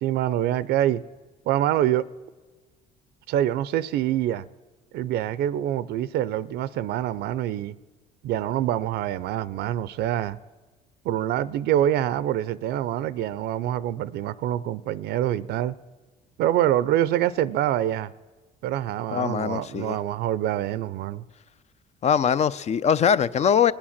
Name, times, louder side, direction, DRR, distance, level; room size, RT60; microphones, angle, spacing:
voice 1, 0.0-1.0 1.5-2.0 3.3-4.5 4.9-7.7 8.2-10.4 11.0-15.7 16.4-18.1 18.6-21.2, right 12 dB, 80° right, 0.5 m, -25 dB
voice 2, 19.1-20.0 22.0-23.7, left 8 dB, 40° left, 0.5 m, -22 dB
21.0 x 8.8 x 7.3 m
cardioid pair, 110°, 17 cm